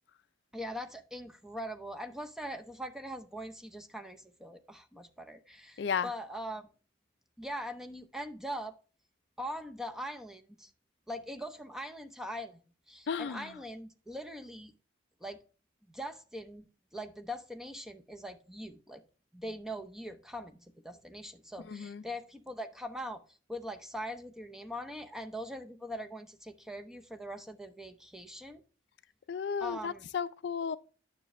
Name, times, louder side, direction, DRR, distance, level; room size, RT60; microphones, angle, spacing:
voice 1, 0.5-6.6 7.4-8.7 9.4-10.7 11.1-12.6 12.9-14.7 15.2-15.4 15.9-16.7 16.9-19.0 19.3-20.6 20.8-23.2 23.5-28.6 29.6-30.1, equal, 5° right, 0.7 m, -41 dB
voice 2, 5.8-6.1 13.1-13.5 21.7-22.0 29.3-30.8, left 6 dB, 60° left, 0.4 m, -34 dB
9.7 x 6.0 x 3.1 m
head